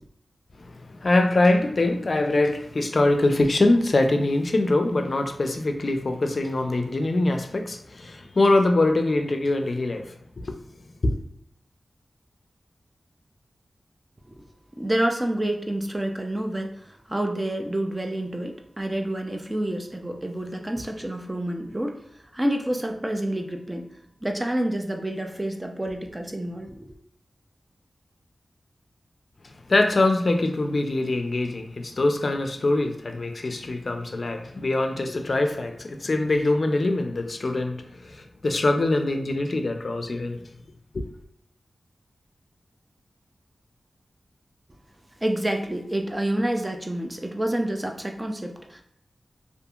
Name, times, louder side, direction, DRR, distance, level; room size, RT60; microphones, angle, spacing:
voice 1, 0.6-10.6 11.0-11.2 29.4-40.4 40.9-41.1, left 2 dB, 60° left, 0.4 m, -23 dB
voice 2, 14.8-22.0 22.3-23.9 24.2-26.9 45.2-48.8, right 1 dB, 20° right, 0.5 m, -28 dB
2.7 x 2.5 x 2.3 m
cardioid pair, 40°, 0 cm